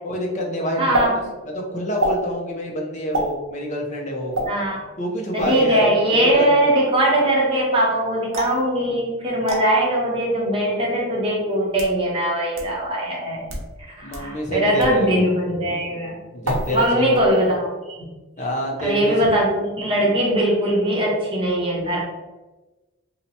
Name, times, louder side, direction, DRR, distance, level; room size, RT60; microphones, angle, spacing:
voice 1, 0.0-0.8 1.4-4.4 5.0-5.9 6.2-6.5 14.0-15.3 16.3-17.2 18.4-19.3, equal, 35° left, 0 dB, 0.5 m, -27 dB
voice 2, 0.8-1.1 4.5-4.9 5.3-13.5 14.0-16.2 16.7-18.1 18.8-22.0, right 1 dB, 25° right, -3 dB, 0.7 m, -20 dB
sound 1, 0.9-1.1 2.0-2.2 3.1-3.3 4.3-4.5 5.4-5.6 8.3-8.6 9.5-9.6 10.6-10.7 11.5-12.0 12.6-12.7 13.4-13.7 14.1-14.2 14.8-15.0 16.4-16.9 17.1-17.6, right 1 dB, 65° right, 0.8 m, -26 dB
2.8 x 2.1 x 3.9 m, 1.2 s
head